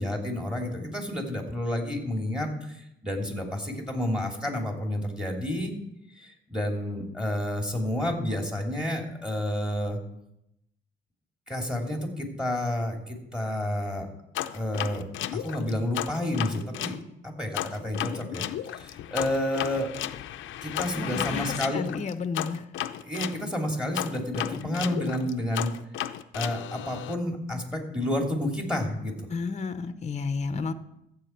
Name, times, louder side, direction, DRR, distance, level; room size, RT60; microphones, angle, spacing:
voice 1, 0.0-5.7 6.2-10.0 11.5-14.1 14.5-17.0 17.2-18.4 18.7-19.9 20.6-21.9 23.0-25.7 26.3-29.3, left 1 dB, 5° right, 2 dB, 2.9 m, -30 dB
sound 1, 14.3-17.0 17.5-23.4 23.9-27.1, left 12 dB, 80° left, 0.6 m, -34 dB
voice 2, 21.0-22.6 29.3-30.7, left 4 dB, 35° left, 10 dB, 0.8 m, -32 dB
14.5 x 7.5 x 4.5 m, 0.82 s
cardioid pair, 90°, 20 cm